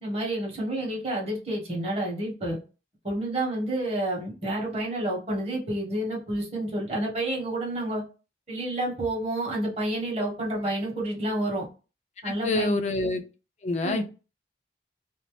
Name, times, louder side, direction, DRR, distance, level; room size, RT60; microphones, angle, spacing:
voice 1, 0.0-2.6 3.0-8.0 8.5-11.6 12.2-12.8 13.8-14.0, right 1 dB, 35° right, -2 dB, 1.1 m, -29 dB
voice 2, 12.2-13.2 13.6-14.1, left 2 dB, 40° left, 7 dB, 0.4 m, -27 dB
2.6 x 2.0 x 3.1 m, 0.32 s
head